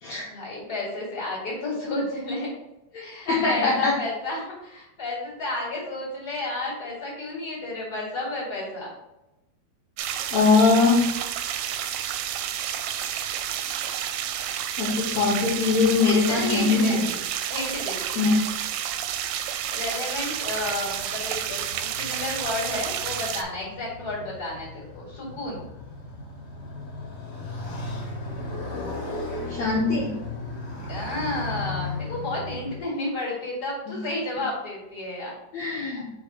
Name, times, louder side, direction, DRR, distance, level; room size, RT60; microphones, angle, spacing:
voice 1, 0.3-2.5 3.0-8.9 16.3-17.2 17.5-18.2 19.7-25.6 30.9-35.9, left 2 dB, 30° left, -4 dB, 2.0 m, -32 dB
voice 2, 2.9-3.9 10.3-11.1 14.8-17.1 18.2-18.4 29.5-30.2 33.9-34.0 35.5-36.1, left 4 dB, 70° left, -5 dB, 1.7 m, -22 dB
sound 1, 10.0-23.4, right 10 dB, 85° right, 2.4 m, -30 dB
Motorcycle, 20.3-32.8, left 2 dB, 50° left, 2.5 m, -36 dB
5.5 x 4.6 x 4.2 m, 0.96 s
omnidirectional pair, 4.4 m